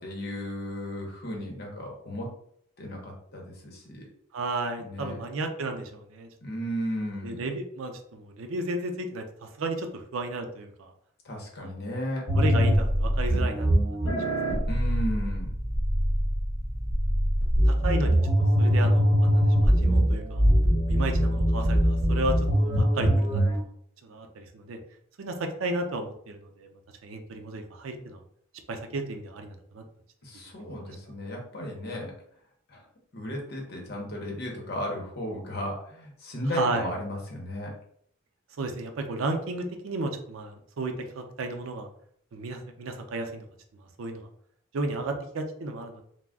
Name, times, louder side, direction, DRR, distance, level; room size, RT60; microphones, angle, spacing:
voice 1, 0.0-2.3 2.8-4.0 4.8-5.2 6.4-7.4 11.2-12.3 14.7-15.6 30.2-32.1 32.7-32.8 33.1-37.7, equal, 55° left, -1 dB, 0.8 m, -34 dB
voice 2, 4.3-6.3 7.2-10.9 11.6-11.9 12.3-13.7 17.6-18.2 18.6-20.4 20.9-23.6 24.0-24.8 25.2-26.7 27.0-28.2 28.7-29.8 30.7-30.9 36.5-36.9 38.6-41.9 42.3-43.4 44.0-44.3 44.7-46.0, right 2 dB, 85° right, 4 dB, 0.5 m, -33 dB
sound 1, 12.3-23.6, equal, 25° left, 1.4 m, -23 dB
2.3 x 2.0 x 3.4 m, 0.66 s
head